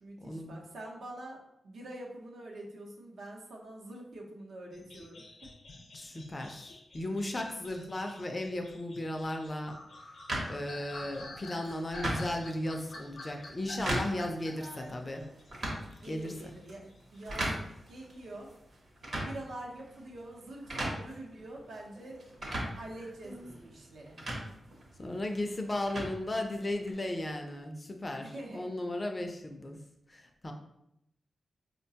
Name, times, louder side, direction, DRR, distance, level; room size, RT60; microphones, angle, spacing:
voice 1, 0.0-5.5 14.6-15.3 16.0-17.6 17.9-18.5 19.2-22.2 22.7-24.2 28.2-28.7, right 1 dB, 90° right, -1 dB, 0.7 m, -45 dB
sound 1, 4.7-16.5 16.9-18.2, left 2 dB, 70° left, 0.6 m, -49 dB
voice 2, 5.9-9.8 10.0-10.2 10.5-15.2 16.0-16.5 25.0-29.8 30.1-30.5, left 1 dB, 25° left, 4 dB, 0.4 m, -36 dB
sound 2, 10.3-26.9, right 1 dB, 50° right, 0.8 m, -40 dB
4.7 x 2.2 x 2.7 m, 0.80 s
wide cardioid pair, 155°, 0 cm